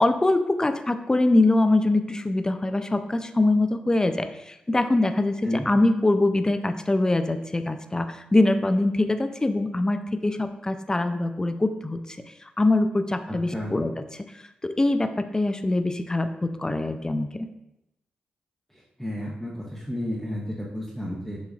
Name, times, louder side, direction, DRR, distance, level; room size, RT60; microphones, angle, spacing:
voice 1, 0.0-5.4 5.7-12.2 12.6-14.0 14.3-17.3, left 2 dB, 20° left, 9 dB, 0.4 m, -23 dB
voice 2, 13.3-13.8 18.7-21.4, left 1 dB, 5° left, -5 dB, 0.9 m, -32 dB
6.8 x 3.0 x 2.4 m, 0.87 s
supercardioid pair, 45°, 3 cm